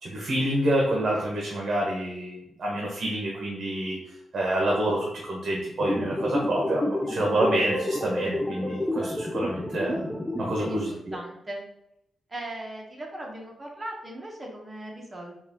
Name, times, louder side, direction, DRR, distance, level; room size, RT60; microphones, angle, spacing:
voice 1, 0.0-4.0 4.3-10.0 10.4-11.2, right 1 dB, 50° right, -2 dB, 0.9 m, -27 dB
sound 1, 5.8-10.8, left 1 dB, 5° left, 0.4 m, -30 dB
voice 2, 10.6-11.7 12.3-15.4, right 1 dB, 20° right, -1 dB, 0.9 m, -38 dB
4.2 x 2.4 x 3.5 m, 0.79 s
wide cardioid pair, 130°, 0 cm